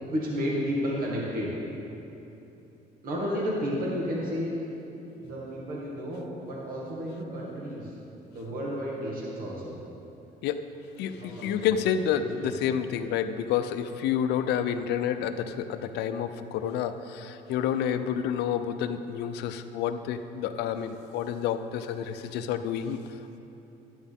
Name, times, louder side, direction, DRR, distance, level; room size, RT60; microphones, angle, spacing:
voice 1, 0.1-1.5 3.0-4.5 5.2-7.9 8.3-9.7 11.2-11.7 12.2-12.6 22.2-22.4, equal, 60° right, -4 dB, 2.1 m, -32 dB
voice 2, 11.0-23.0, left 8 dB, 80° left, 9 dB, 0.6 m, -29 dB
12.5 x 9.2 x 3.6 m, 2.9 s
cardioid pair, 110°, 17 cm